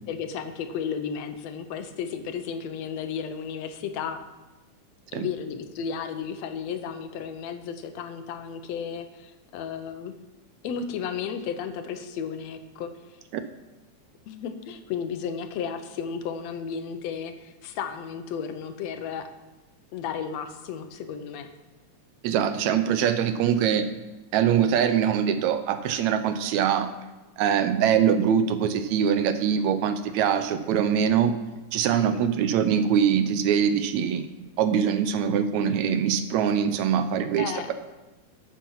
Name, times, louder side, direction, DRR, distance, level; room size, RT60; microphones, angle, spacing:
voice 1, 0.1-4.2 5.1-10.1 10.6-12.9 14.3-19.3 19.9-21.5 31.9-32.3 37.4-37.7, left 7 dB, 70° left, 8 dB, 1.9 m, -33 dB
voice 2, 22.2-23.9 24.3-26.9 27.4-31.4 31.7-34.3 34.6-37.7, right 8 dB, 75° right, 10 dB, 1.9 m, -23 dB
13.0 x 7.4 x 5.6 m, 1.1 s
omnidirectional pair, 3.4 m